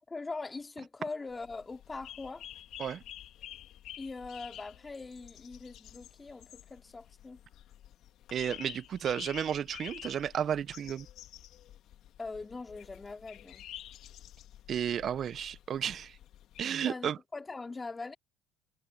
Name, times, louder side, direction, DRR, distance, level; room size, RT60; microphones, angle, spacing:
voice 1, 0.1-2.4 4.0-7.4 12.2-13.6 16.8-18.2, left 3 dB, 25° left, 3.0 m, -42 dB
sound 1, 1.3-16.7, left 12 dB, 65° left, 1.8 m, -50 dB
voice 2, 8.3-11.1 14.7-16.2 16.6-17.2, right 9 dB, 55° right, 0.7 m, -33 dB
hypercardioid pair, 65°, 0 cm